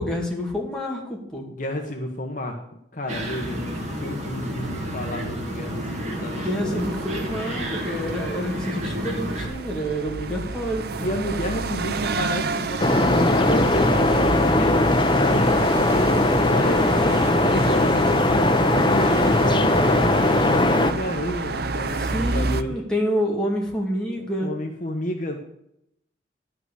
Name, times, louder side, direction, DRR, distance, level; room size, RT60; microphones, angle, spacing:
voice 1, 0.0-1.5 6.3-11.1 22.0-24.5, equal, 5° left, -2 dB, 2.5 m, -28 dB
voice 2, 1.5-6.8 11.0-12.8 13.1-16.8 17.3-22.8 24.4-25.4, left 1 dB, 45° left, 3 dB, 1.2 m, -31 dB
sound 1, 3.1-9.5, equal, 35° right, 2.5 m, -30 dB
sound 2, 6.8-22.6, right 3 dB, 55° right, 0.6 m, -30 dB
sound 3, 12.8-20.9, left 2 dB, 25° left, 0.7 m, -19 dB
11.0 x 5.9 x 8.1 m, 0.77 s
head